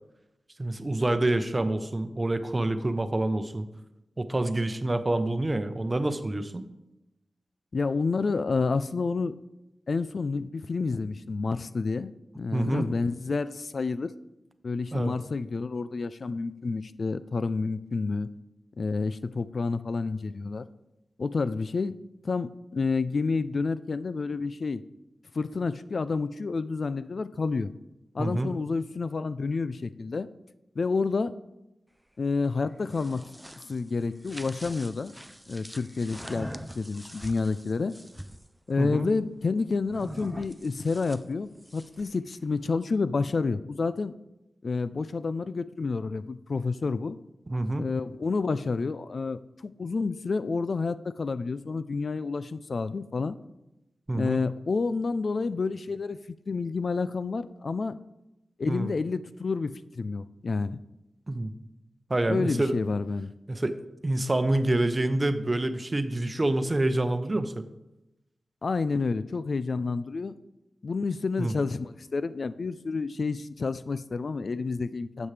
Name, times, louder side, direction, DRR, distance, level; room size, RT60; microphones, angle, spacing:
voice 1, 0.6-3.7 4.2-6.6 12.5-12.9 14.9-15.1 28.2-28.5 38.8-39.1 47.5-47.8 54.1-54.4 58.7-58.9 61.3-61.5 62.1-62.8 63.5-63.8 64.0-67.7 71.4-71.5, right 2 dB, 30° right, 10 dB, 0.8 m, -27 dB
voice 2, 7.7-9.3 9.9-14.1 14.6-18.3 18.8-20.6 21.2-21.9 22.2-24.8 25.3-27.7 28.1-30.3 30.8-31.3 32.2-33.2 33.6-35.1 35.5-37.9 38.7-44.1 44.6-47.2 47.8-53.4 54.1-56.2 56.5-57.9 58.6-60.8 62.3-63.3 68.6-70.3 70.8-75.3, left 4 dB, 60° left, 14 dB, 0.4 m, -29 dB
sound 1, 32.7-38.5 39.9-42.2, equal, ahead, 0.5 m, -44 dB
12.5 x 7.2 x 3.3 m, 0.93 s
cardioid pair, 65°, 0 cm